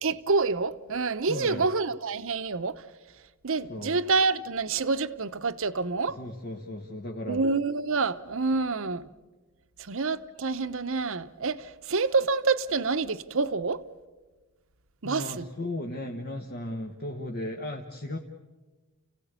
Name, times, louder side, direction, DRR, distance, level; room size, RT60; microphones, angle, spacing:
voice 1, 0.0-2.8 3.4-6.2 7.3-9.1 9.8-13.8 15.0-15.5, right 4 dB, 65° right, 0.9 m, -27 dB
voice 2, 1.3-1.7 3.7-4.0 6.1-7.4 15.0-18.2, left 1 dB, 50° left, 1.4 m, -36 dB
29.5 x 16.5 x 8.2 m
head